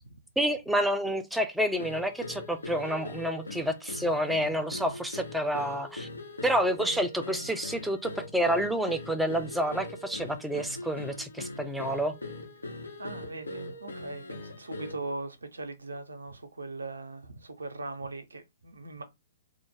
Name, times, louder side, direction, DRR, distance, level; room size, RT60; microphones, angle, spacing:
voice 1, 0.4-6.1 6.4-12.1, equal, ahead, 0.4 m, -29 dB
sound 1, 1.8-15.1, left 2 dB, 80° left, 0.6 m, -41 dB
voice 2, 12.6-19.0, right 2 dB, 80° right, 0.5 m, -40 dB
2.4 x 2.1 x 3.2 m
figure-of-eight pair, 115°, 0 cm